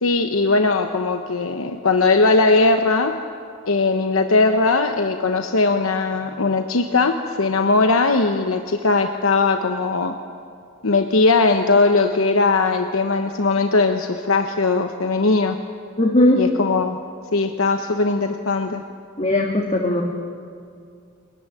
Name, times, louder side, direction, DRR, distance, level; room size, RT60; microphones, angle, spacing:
voice 1, 0.0-3.2 3.7-10.1 10.8-15.6 16.4-17.0 17.3-18.8, left 3 dB, 80° left, 6 dB, 1.0 m, -19 dB
voice 2, 16.0-16.5 19.2-20.0, left 1 dB, 30° left, 0 dB, 1.7 m, -18 dB
23.0 x 15.5 x 9.9 m, 2.3 s
head